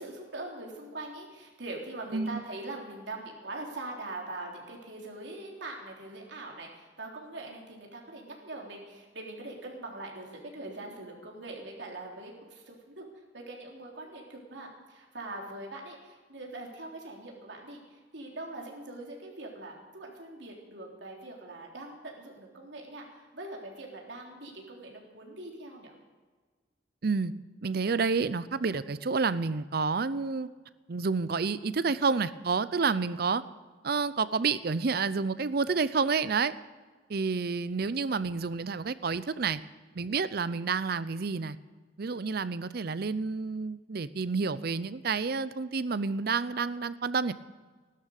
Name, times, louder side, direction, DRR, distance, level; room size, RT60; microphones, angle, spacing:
voice 1, 0.0-13.1 13.3-25.9, right 2 dB, 75° right, 0 dB, 3.5 m, -42 dB
voice 2, 27.0-27.3 27.6-30.5 30.9-33.4 33.8-36.5 37.1-39.6 39.9-41.6 42.0-47.3, right 4 dB, 55° right, 16 dB, 0.6 m, -29 dB
16.0 x 12.5 x 6.6 m, 1.4 s
head